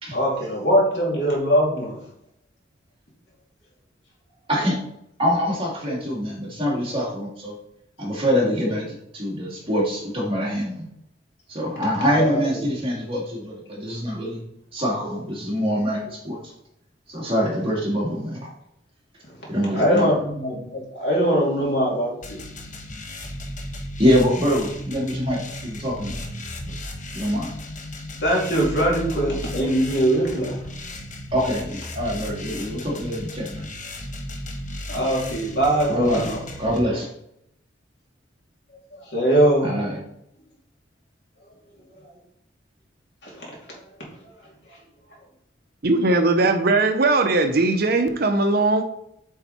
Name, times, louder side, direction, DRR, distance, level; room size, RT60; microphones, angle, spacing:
voice 1, 0.1-2.0 12.1-12.4 19.7-22.4 28.2-30.6 34.9-36.4 39.1-39.7 43.2-43.5, right 1 dB, 65° left, -3 dB, 2.9 m, -21 dB
voice 2, 5.2-7.5 8.0-10.9 11.5-14.4 14.7-16.5 17.1-18.4 19.5-20.1 24.0-26.3 26.6-26.7 27.1-27.5 31.3-33.7 35.9-36.3 36.6-37.1 39.6-40.0, equal, 30° right, -4 dB, 2.5 m, -24 dB
sound 1, 22.2-36.8, left 1 dB, 40° left, 1.2 m, -35 dB
voice 3, 45.8-48.8, right 2 dB, 55° right, 6 dB, 0.7 m, -19 dB
8.4 x 4.5 x 4.2 m, 0.77 s
head